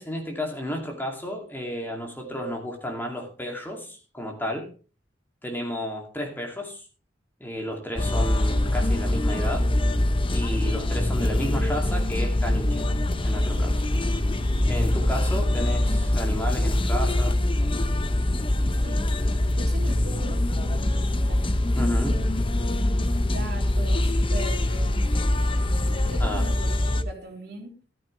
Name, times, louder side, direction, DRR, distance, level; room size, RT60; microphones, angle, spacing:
voice 1, 0.0-4.7 5.4-6.8 7.4-9.7 10.3-13.8 14.7-17.3 21.8-22.2 26.2-26.4, equal, 10° left, 2.5 m, -32 dB
sound 1, 8.0-27.0, left 1 dB, 30° left, 0.9 m, -23 dB
voice 2, 19.5-21.4 22.0-22.3 23.3-27.7, right 1 dB, 60° right, 3.5 m, -40 dB
14.0 x 13.5 x 3.2 m
head